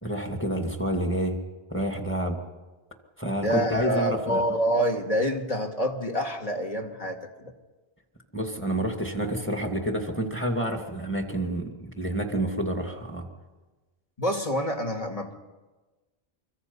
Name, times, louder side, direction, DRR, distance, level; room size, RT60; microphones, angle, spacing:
voice 1, 0.0-1.4 1.7-2.4 3.2-4.4 8.3-13.3, right 1 dB, 10° left, 3 dB, 2.3 m, -28 dB
voice 2, 3.4-7.2 14.2-15.3, equal, 35° left, 2 dB, 2.2 m, -27 dB
26.5 x 23.5 x 5.5 m, 1.2 s
omnidirectional pair, 1.1 m